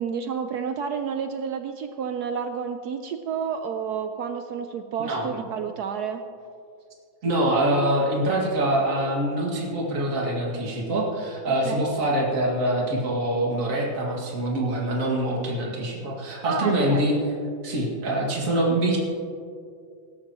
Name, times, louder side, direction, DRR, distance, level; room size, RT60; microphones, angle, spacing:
voice 1, 0.0-6.2 11.7-11.8 16.5-17.1, right 7 dB, 70° right, 8 dB, 0.9 m, -30 dB
voice 2, 7.2-17.2 17.6-19.0, right 1 dB, 45° right, -3 dB, 2.4 m, -24 dB
17.5 x 13.0 x 3.0 m, 2.3 s
omnidirectional pair, 2.1 m